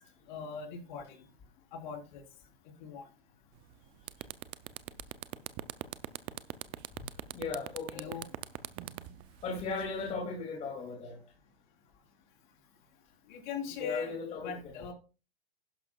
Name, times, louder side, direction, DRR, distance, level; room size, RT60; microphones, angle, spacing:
voice 1, 0.3-1.3 1.7-2.2 2.6-3.1 7.9-8.3 13.3-14.9, left 6 dB, 50° left, 3.8 m, -41 dB
sound 1, 3.6-3.7 4.0-10.1, right 17 dB, 20° right, 0.4 m, -41 dB
voice 2, 7.3-8.1 9.4-11.2 13.8-14.7, left 4 dB, 20° left, 2.4 m, -37 dB
11.5 x 11.0 x 2.3 m
hypercardioid pair, 125°, 30 cm